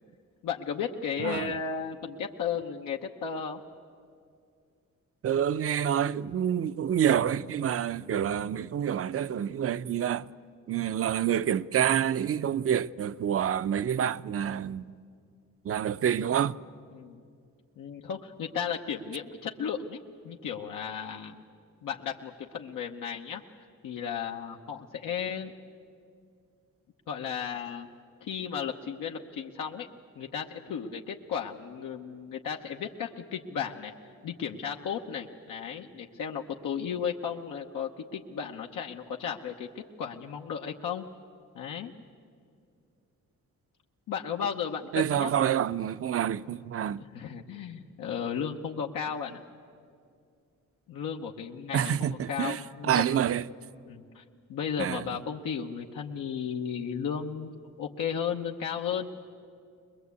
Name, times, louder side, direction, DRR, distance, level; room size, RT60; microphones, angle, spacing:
voice 1, 0.4-3.6 16.9-17.2 17.8-21.4 21.8-23.4 23.8-25.5 27.1-27.9 28.2-29.9 30.2-33.9 34.2-41.1 41.5-41.9 44.1-45.6 46.9-49.4 50.9-53.3 53.9-54.2 54.5-59.2, left 7 dB, 85° left, 1.0 m, -34 dB
voice 2, 1.2-1.5 5.2-10.3 10.7-14.9 15.6-16.6 44.9-47.0 51.7-53.5 54.8-55.1, right 9 dB, 45° right, 0.5 m, -27 dB
22.0 x 21.5 x 8.3 m
cardioid pair, 85°, 32 cm